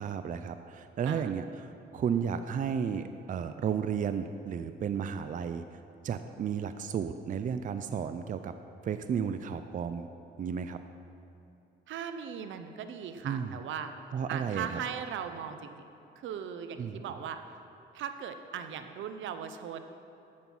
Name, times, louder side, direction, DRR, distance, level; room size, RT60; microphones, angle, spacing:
voice 1, 0.0-8.5 8.8-10.1 10.4-10.8 13.2-13.6 14.1-14.8 16.8-17.2, right 7 dB, 40° right, 10 dB, 0.4 m, -33 dB
voice 2, 11.9-13.9 14.3-15.8 16.2-17.4 17.9-19.8, right 8 dB, 75° right, 9 dB, 0.7 m, -38 dB
10.5 x 7.6 x 5.5 m, 2.8 s
cardioid pair, 90°, 20 cm